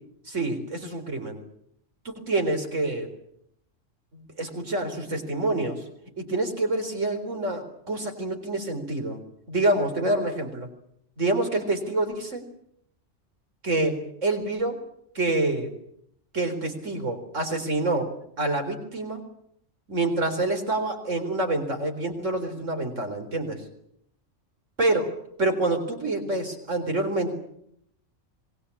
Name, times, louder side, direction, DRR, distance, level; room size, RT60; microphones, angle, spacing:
voice 1, 0.3-1.4 2.0-3.1 4.1-5.8 6.2-9.2 9.5-10.7 11.2-12.4 13.6-14.8 15.1-15.7 16.3-18.1 18.4-19.2 19.9-23.6 24.8-25.1 25.4-27.4, right 2 dB, 75° right, 5 dB, 4.5 m, -27 dB
26.0 x 21.0 x 8.6 m, 0.72 s
omnidirectional pair, 1.3 m